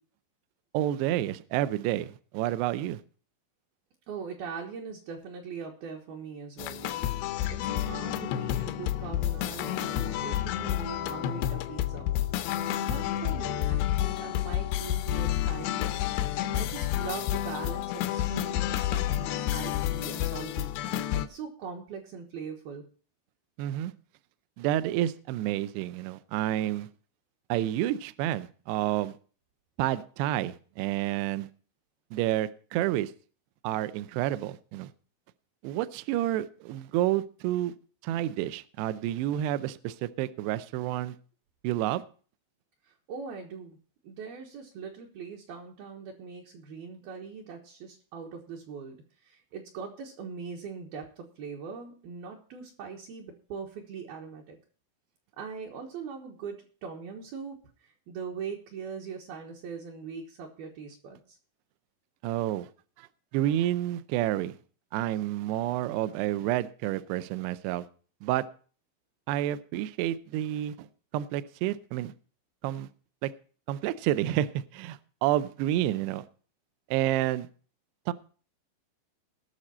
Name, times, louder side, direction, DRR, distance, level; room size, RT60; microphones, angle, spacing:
voice 1, 0.7-3.0 23.6-23.9 24.6-26.9 27.5-29.2 29.8-31.5 32.1-33.1 33.6-34.9 35.6-37.7 38.0-41.2 41.6-42.0 62.2-62.7 63.0-63.1 63.3-64.5 64.9-67.8 68.2-68.4 69.3-70.9 71.1-72.1 72.6-72.9 73.2-73.3 73.7-76.3 76.9-77.5 78.1-78.2, right 13 dB, 85° right, 14 dB, 2.4 m, -29 dB
voice 2, 4.1-12.1 12.7-22.8 42.8-43.8 44.0-49.0 49.2-54.6 55.4-61.4, right 6 dB, 65° right, -1 dB, 2.7 m, -41 dB
sound 1, 6.6-21.3, left 12 dB, 85° left, 2.5 m, -30 dB
19.0 x 6.6 x 4.2 m, 0.41 s
omnidirectional pair, 5.5 m